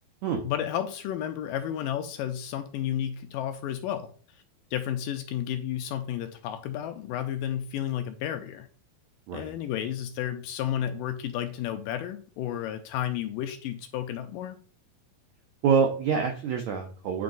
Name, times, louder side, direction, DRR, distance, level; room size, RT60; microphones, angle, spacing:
voice 1, 0.4-4.4 4.7-8.7 9.3-14.6, left 10 dB, 80° left, 7 dB, 2.1 m, -32 dB
voice 2, 15.6-17.2, right 6 dB, 80° right, 3 dB, 1.6 m, -26 dB
9.4 x 4.2 x 3.9 m, 0.41 s
omnidirectional pair, 4.3 m